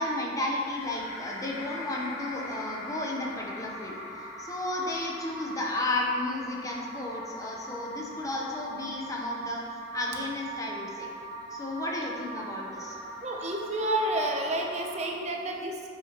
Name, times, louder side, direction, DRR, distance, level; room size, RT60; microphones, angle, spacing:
voice 1, 0.0-11.1 11.5-12.9, left 1 dB, 20° left, -2 dB, 0.8 m, -33 dB
sound 1, 0.6-15.1, equal, 65° left, 1.3 m, -41 dB
voice 2, 13.2-15.9, right 1 dB, 40° right, 1 dB, 0.6 m, -30 dB
7.9 x 5.5 x 3.0 m, 2.2 s
head